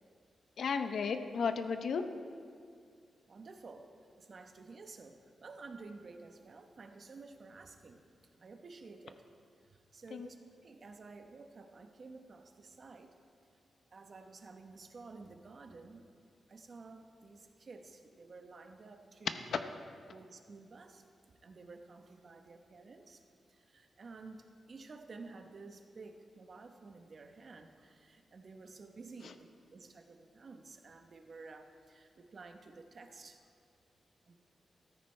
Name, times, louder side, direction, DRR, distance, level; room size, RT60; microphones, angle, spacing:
voice 1, 0.6-2.1 10.1-10.3 19.5-19.6 29.2-29.3, left 5 dB, 70° left, 8 dB, 0.7 m, -34 dB
voice 2, 3.3-3.9 4.2-8.0 8.4-9.2 9.6-13.1 13.9-16.0 16.5-19.5 20.1-21.0 21.4-23.2 23.5-33.4 34.3-34.4, right 3 dB, 45° right, 5 dB, 1.0 m, -52 dB
14.0 x 13.5 x 3.3 m, 2.2 s
wide cardioid pair, 120°, 0 cm